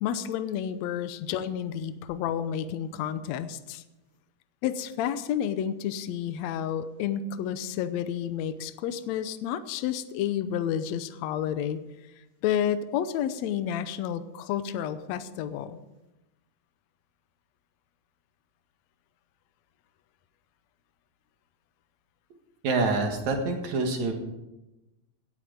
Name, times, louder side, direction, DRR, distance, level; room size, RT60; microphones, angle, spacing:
voice 1, 0.0-3.8 4.6-11.8 12.4-15.8, left 9 dB, 85° left, 12 dB, 1.6 m, -30 dB
voice 2, 22.6-24.1, right 3 dB, 60° right, 3 dB, 2.8 m, -26 dB
17.5 x 8.8 x 5.1 m, 0.99 s
omnidirectional pair, 4.0 m